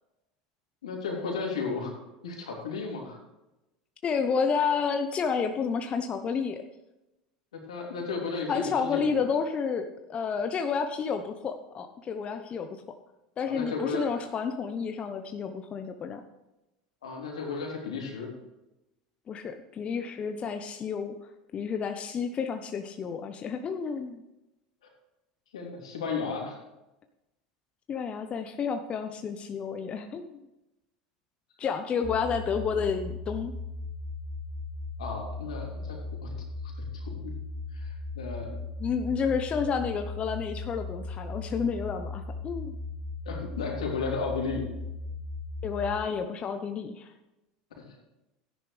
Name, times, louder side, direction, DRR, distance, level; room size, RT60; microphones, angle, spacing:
voice 1, 0.8-1.9 2.2-3.2 7.5-9.3 13.5-14.1 17.0-18.3 25.5-26.6 35.0-36.4 36.6-37.3 37.7-38.6 43.2-44.6 47.8-48.0, left 4 dB, 85° left, 0 dB, 3.0 m, -34 dB
voice 2, 4.0-6.6 8.5-12.8 13.4-16.2 19.3-21.1 21.5-24.2 27.9-30.4 31.6-33.5 38.5-42.8 45.6-47.1, left 6 dB, 35° left, 7 dB, 0.8 m, -30 dB
sound 1, 32.0-46.0, left 3 dB, 10° left, 2.2 m, -37 dB
13.5 x 10.5 x 3.3 m, 0.97 s
hypercardioid pair, 85°, 3 cm